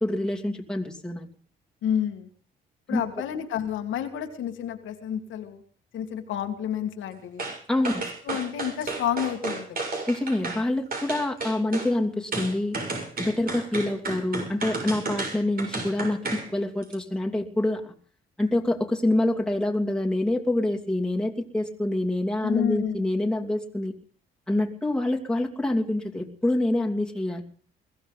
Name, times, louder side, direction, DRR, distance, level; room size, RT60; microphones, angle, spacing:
voice 1, 0.0-1.3 2.9-3.0 7.7-8.0 10.1-12.8 13.2-17.9 18.4-23.9 24.5-27.4, left 1 dB, 5° left, 0 dB, 2.8 m, -26 dB
voice 2, 1.8-2.3 2.9-5.6 5.9-7.5 8.3-9.9 22.4-23.1, left 9 dB, 80° left, 5 dB, 2.1 m, -30 dB
sound 1, 7.4-7.6 7.8-10.6 10.9-11.9 12.3-16.5 16.8-16.9, right 3 dB, 50° right, 6.6 m, -32 dB
21.5 x 15.5 x 4.0 m, 0.43 s
cardioid pair, 90°, 20 cm